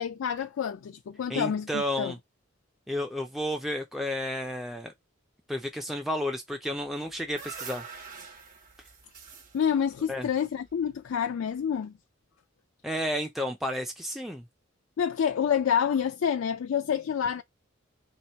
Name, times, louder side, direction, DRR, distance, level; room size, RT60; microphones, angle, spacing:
voice 1, 0.0-2.1 9.5-11.9 15.0-17.4, left 8 dB, 85° left, 0.3 m, -28 dB
voice 2, 1.3-2.2 2.9-4.9 5.5-7.8 10.1-10.3 12.8-14.4, equal, ahead, 0.4 m, -32 dB
sound 1, 6.9-11.1, right 6 dB, 45° right, 1.2 m, -45 dB
3.0 x 2.9 x 4.4 m
head